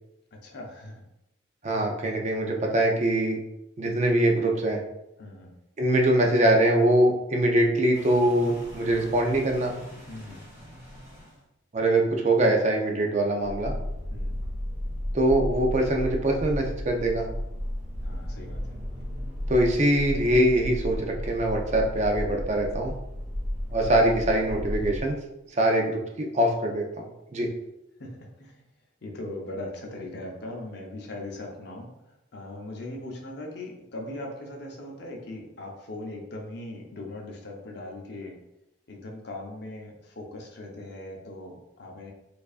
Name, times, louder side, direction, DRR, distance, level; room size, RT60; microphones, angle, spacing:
voice 1, 0.3-1.0 5.2-5.5 10.1-10.4 14.1-14.4 18.0-18.8 23.9-24.0 28.0-28.6 29.0-38.4 38.9-42.1, left 1 dB, 60° left, 0 dB, 0.7 m, -39 dB
voice 2, 1.6-3.4 3.8-4.8 5.8-9.7 11.7-13.7 15.1-17.3 19.5-22.9 23.7-25.2 25.6-27.1 27.3-27.5, right 1 dB, 40° right, 1 dB, 0.5 m, -23 dB
sound 1, 7.9-11.4 13.4-25.0, equal, 15° right, 1.2 m, -34 dB
4.5 x 2.5 x 2.4 m, 0.88 s
head